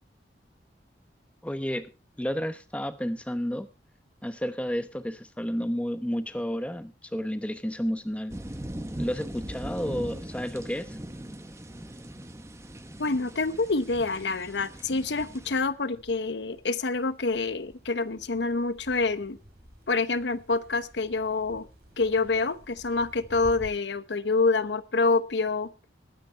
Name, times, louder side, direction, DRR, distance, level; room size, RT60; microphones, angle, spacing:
voice 1, 1.4-1.9 2.2-3.7 4.2-8.4 9.0-11.0, equal, 5° left, 10 dB, 0.9 m, -31 dB
sound 1, 7.7-23.7, equal, 60° right, 3.5 m, -54 dB
sound 2, 8.3-15.6, right 1 dB, 15° right, 1.0 m, -40 dB
voice 2, 13.0-19.4 19.9-21.7 22.0-25.7, left 3 dB, 85° left, 14 dB, 0.9 m, -27 dB
21.0 x 9.3 x 3.4 m, 0.29 s
head